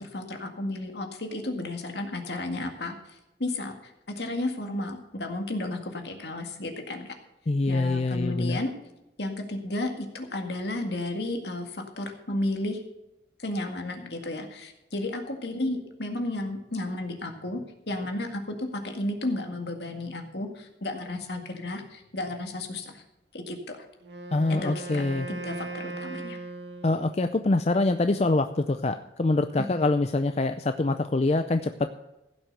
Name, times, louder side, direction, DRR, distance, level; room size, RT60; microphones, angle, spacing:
voice 1, 0.0-2.9 3.4-7.1 7.7-8.7 9.2-12.8 13.4-17.6 17.9-23.0 23.3-23.9 24.5-25.0 25.3-26.4, left 2 dB, 65° left, 4 dB, 1.9 m, -33 dB
voice 2, 7.5-8.6 24.3-25.3 26.8-31.9, left 2 dB, 35° left, 8 dB, 0.5 m, -25 dB
Wind instrument woodwind instrument, 24.0-27.3, right 3 dB, 70° right, 1.5 m, -38 dB
16.0 x 6.2 x 6.6 m, 0.95 s
head